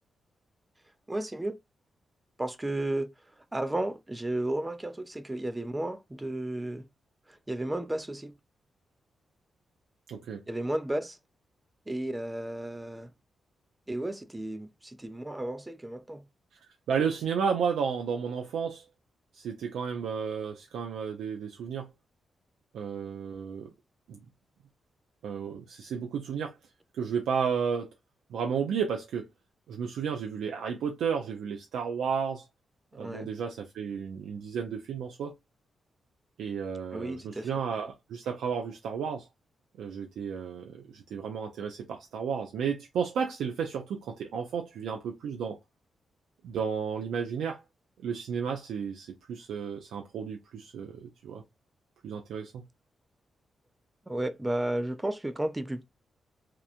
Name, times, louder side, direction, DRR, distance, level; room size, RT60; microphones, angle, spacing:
voice 1, 1.1-1.5 2.4-6.9 7.3-8.3 10.5-11.2 11.9-13.1 13.9-16.2 32.9-33.3 36.9-37.5 54.1-55.8, right 1 dB, 15° right, 0.4 m, -33 dB
voice 2, 10.1-10.4 16.9-18.9 19.3-21.9 22.7-23.7 24.1-24.2 25.2-26.6 26.9-27.9 28.3-29.3 29.7-32.5 32.9-35.3 36.4-39.3 39.8-45.6 46.4-47.6 48.0-51.4 52.0-52.6, right 6 dB, 85° right, 0.4 m, -32 dB
2.9 x 2.1 x 2.3 m
cardioid pair, 60°, 0 cm